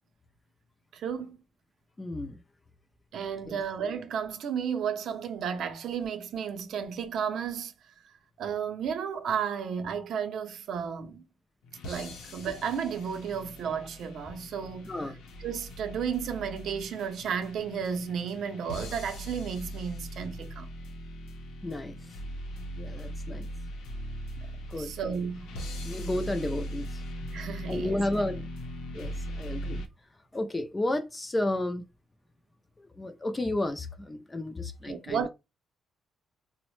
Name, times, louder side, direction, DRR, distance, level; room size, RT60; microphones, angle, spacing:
voice 1, 0.9-1.4 3.1-11.2 11.8-14.9 15.4-20.7 24.8-25.5 27.3-28.0 34.8-35.3, right 7 dB, 60° right, 0.5 m, -33 dB
voice 2, 2.0-2.4 3.5-3.6 14.8-15.1 21.6-22.2 22.8-23.5 24.7-24.9 25.8-27.0 27.7-28.5 28.9-29.8 30.3-31.8 32.8-35.3, left 1 dB, 15° left, 0.3 m, -32 dB
sound 1, 11.6-29.9, equal, 90° left, 0.6 m, -40 dB
3.9 x 2.0 x 3.0 m
cardioid pair, 165°, 0 cm